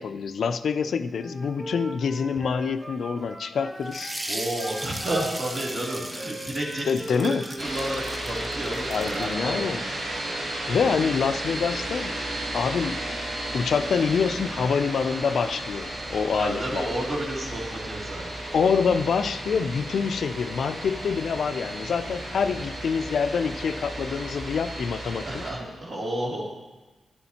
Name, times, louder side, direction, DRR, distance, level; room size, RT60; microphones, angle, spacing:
voice 1, 0.0-4.1 6.9-7.4 8.9-9.8 10.7-12.1 12.5-13.0 13.5-16.9 18.5-25.4, left 6 dB, 75° left, 11 dB, 0.4 m, -26 dB
Wind instrument woodwind instrument, 1.2-4.2 4.6-8.0, equal, 10° right, 2.1 m, -40 dB
sound 1, 3.8-9.3, right 1 dB, 30° right, 1.1 m, -37 dB
voice 2, 4.3-9.7 10.8-10.9 16.4-18.2 25.2-26.4, right 1 dB, 55° right, -4 dB, 2.7 m, -31 dB
sound 2, 7.6-25.5, right 1 dB, 85° right, 2.2 m, -34 dB
11.5 x 9.9 x 2.9 m, 1.2 s
cardioid pair, 75°, 0 cm